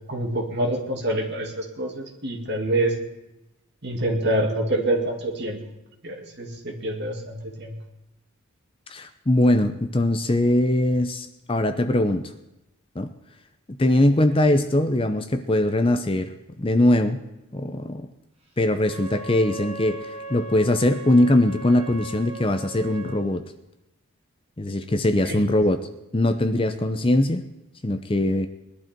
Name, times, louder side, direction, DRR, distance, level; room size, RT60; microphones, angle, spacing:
voice 1, 0.1-2.9 3.8-5.6 6.0-7.7 25.2-25.4, right 1 dB, 50° right, 1 dB, 2.6 m, -26 dB
voice 2, 8.9-12.2 13.0-13.1 13.8-16.3 16.6-17.2 17.5-18.1 18.6-23.5 24.6-25.9 26.1-27.4 27.8-28.5, left 1 dB, 25° left, 9 dB, 0.7 m, -21 dB
Wind instrument woodwind instrument, 18.8-23.2, right 2 dB, 30° right, 2.5 m, -38 dB
20.5 x 11.5 x 4.6 m, 0.93 s
head